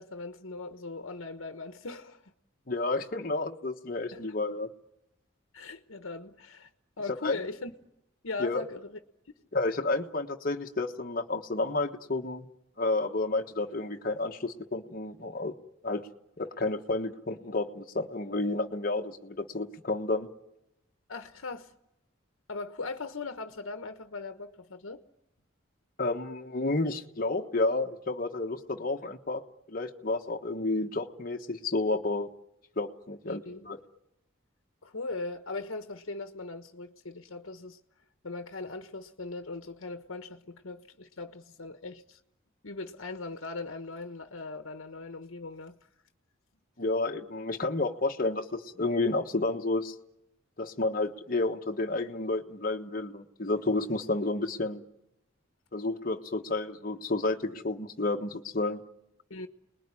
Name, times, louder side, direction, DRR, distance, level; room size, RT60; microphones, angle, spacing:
voice 1, 0.0-2.3 4.1-4.2 5.5-6.7 7.0-7.7 8.2-9.0 21.1-21.7 22.5-25.0 33.2-33.7 34.8-37.8 38.2-42.2 42.6-45.8 59.3-59.5, left 3 dB, 85° left, 1.2 m, -39 dB
voice 2, 2.7-4.7 7.2-7.4 8.4-8.6 9.5-12.5 12.8-15.5 15.8-16.1 16.4-20.3 26.0-29.4 29.7-32.3 32.8-33.8 46.8-49.9 50.6-54.8 55.7-58.8, left 2 dB, 45° left, 1.4 m, -31 dB
29.5 x 20.5 x 9.9 m
head